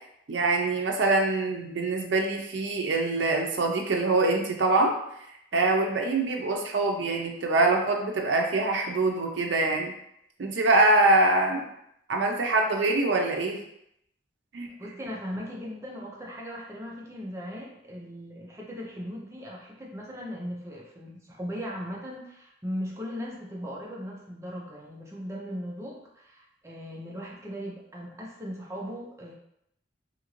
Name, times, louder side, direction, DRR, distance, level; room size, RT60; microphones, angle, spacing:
voice 1, 0.3-4.9 5.5-9.9 10.4-11.7 12.1-13.6 14.5-14.7, right 2 dB, 80° right, 2 dB, 0.5 m, -24 dB
voice 2, 14.7-29.3, equal, 15° right, -3 dB, 0.5 m, -38 dB
2.8 x 2.5 x 3.0 m, 0.78 s
head